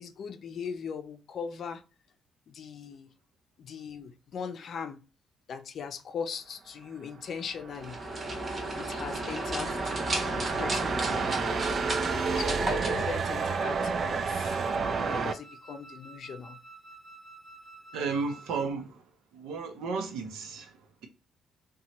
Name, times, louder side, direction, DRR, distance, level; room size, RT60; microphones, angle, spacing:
voice 1, 0.0-1.8 2.5-3.1 3.6-5.0 5.5-8.0 8.8-14.6 14.9-16.6, left 6 dB, 60° left, 0.5 m, -39 dB
sound 1, 7.4-15.3, right 5 dB, 50° right, 0.3 m, -31 dB
sound 2, 7.7-13.9, right 1 dB, 35° right, 0.9 m, -34 dB
Wind instrument woodwind instrument, 13.4-18.8, right 2 dB, 20° left, 0.6 m, -51 dB
voice 2, 17.9-19.0 19.3-21.1, right 4 dB, 90° right, 0.7 m, -34 dB
2.9 x 2.3 x 2.7 m
cardioid pair, 90°, 0 cm